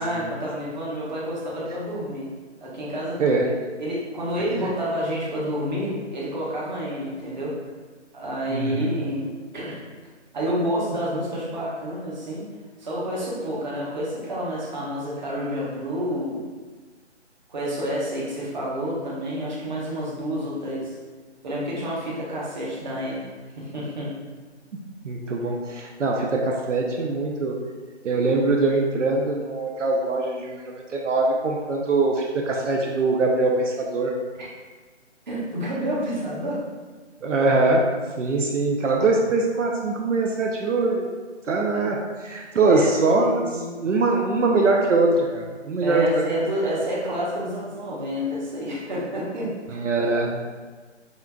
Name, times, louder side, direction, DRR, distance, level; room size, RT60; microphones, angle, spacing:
voice 1, 0.0-2.3 2.6-3.2 3.8-7.6 8.1-9.3 9.5-9.8 10.3-12.4 12.8-16.4 17.5-21.0 21.4-23.3 23.5-24.1 34.4-34.5 35.3-36.6 41.7-41.8 42.7-43.8 45.8-49.5, equal, 40° right, -6 dB, 1.0 m, -29 dB
voice 2, 8.5-8.9 25.0-27.6 28.0-34.1 37.2-37.8 38.2-41.1 41.5-43.4 43.8-46.3 49.7-50.4, right 3 dB, 85° right, 0 dB, 0.6 m, -22 dB
5.4 x 2.5 x 2.3 m, 1.4 s
figure-of-eight pair, 160°, 36 cm